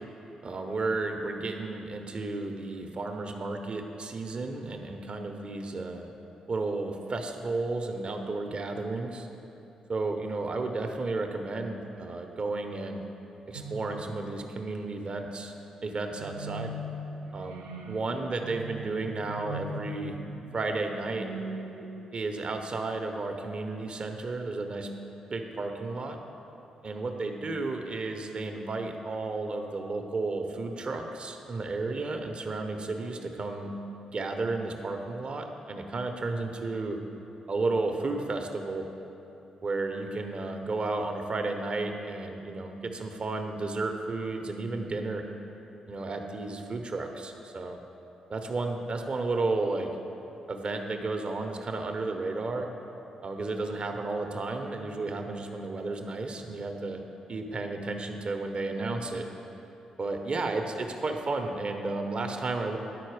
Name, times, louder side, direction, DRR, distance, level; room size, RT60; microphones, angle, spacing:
voice 1, 0.4-6.1 6.5-9.3 9.9-13.0 13.5-15.5 15.8-16.8 17.3-20.2 20.5-21.3 22.1-24.9 25.3-26.2 26.8-33.7 34.1-37.0 37.5-38.9 39.6-45.2 45.9-47.8 48.3-49.9 50.5-52.7 53.2-57.0 57.3-59.2 60.0-62.8, right 3 dB, 50° right, 4 dB, 0.7 m, -33 dB
sound 1, 13.5-14.6 16.2-22.7, right 1 dB, 90° right, 0.5 m, -40 dB
9.9 x 4.2 x 4.8 m, 2.9 s
hypercardioid pair, 40°, 2 cm